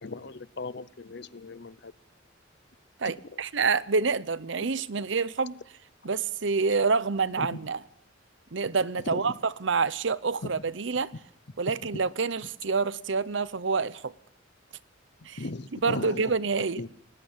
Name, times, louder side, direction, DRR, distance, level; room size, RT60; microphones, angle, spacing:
voice 1, 0.0-1.9 7.4-7.5 9.0-9.3 10.4-10.5 11.8-12.0 15.2-16.3 16.8-16.9, left 3 dB, 60° left, 0.8 m, -37 dB
voice 2, 3.0-5.6 6.0-7.8 8.5-11.1 11.6-14.1 15.3-15.4 15.8-16.9, right 4 dB, 65° right, 0.8 m, -27 dB
20.5 x 20.0 x 7.3 m
head